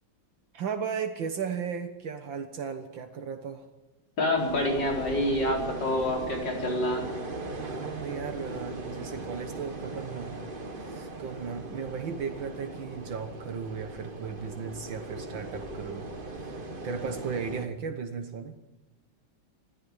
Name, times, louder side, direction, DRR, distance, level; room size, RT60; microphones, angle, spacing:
voice 1, 0.5-3.7 7.6-10.4 10.8-18.5, right 6 dB, 70° right, 7 dB, 2.0 m, -36 dB
voice 2, 4.2-7.0, left 1 dB, 60° left, 1 dB, 5.0 m, -27 dB
sound 1, 4.4-17.7, right 2 dB, 25° right, 1.9 m, -39 dB
20.5 x 13.5 x 9.6 m, 1.1 s
omnidirectional pair, 2.2 m